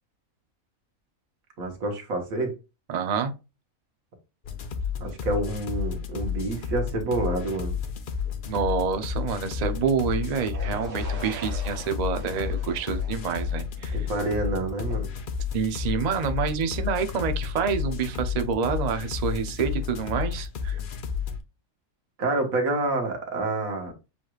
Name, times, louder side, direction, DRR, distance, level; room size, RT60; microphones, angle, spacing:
voice 1, 1.6-2.6 5.0-7.8 13.9-15.1 22.2-23.9, right 2 dB, 85° right, 1.7 m, -28 dB
voice 2, 2.9-3.3 8.5-14.1 15.5-20.8, right 6 dB, 45° right, 0.5 m, -27 dB
sound 1, 4.4-21.4, left 6 dB, 55° left, 0.6 m, -31 dB
sound 2, 10.5-14.4, right 3 dB, 65° right, 1.5 m, -42 dB
7.1 x 3.1 x 2.3 m
omnidirectional pair, 1.4 m